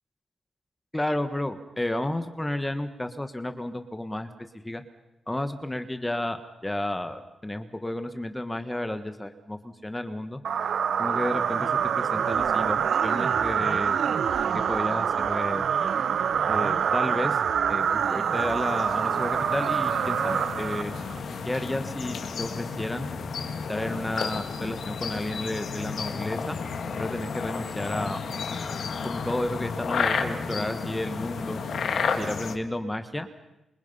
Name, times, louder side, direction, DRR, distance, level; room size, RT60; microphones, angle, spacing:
voice 1, 0.9-4.3 4.6-4.8 5.3-10.4 11.0-14.0 14.5-15.6 16.5-17.4 17.7-21.0 21.4-23.1 23.7-26.6 27.0-28.2 29.0-31.6 32.2-33.3, left 1 dB, 10° left, 8 dB, 1.5 m, -32 dB
sound 1, 10.4-21.2, right 7 dB, 75° right, 1.0 m, -25 dB
sound 2, 17.7-32.5, left 5 dB, 70° left, 2.6 m, -32 dB
sound 3, 26.1-31.6, left 4 dB, 45° left, 2.8 m, -40 dB
28.0 x 26.5 x 5.7 m, 0.94 s
cardioid pair, 100°, 0 cm